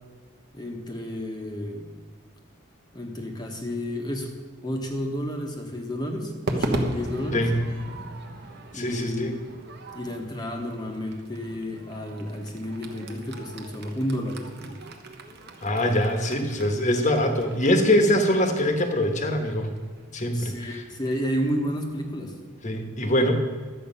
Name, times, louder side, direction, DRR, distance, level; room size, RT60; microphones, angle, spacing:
voice 1, 0.5-1.9 2.9-4.3 4.6-7.4 8.7-9.4 9.9-14.8 20.2-22.3, equal, 20° left, 2 dB, 1.2 m, -31 dB
Crowd / Fireworks, 6.5-20.9, right 1 dB, 50° right, 1.1 m, -38 dB
voice 2, 8.7-9.4 15.6-19.7 20.1-20.8 22.6-23.4, left 1 dB, 35° left, 5 dB, 1.3 m, -23 dB
12.5 x 8.4 x 5.6 m, 1.5 s
head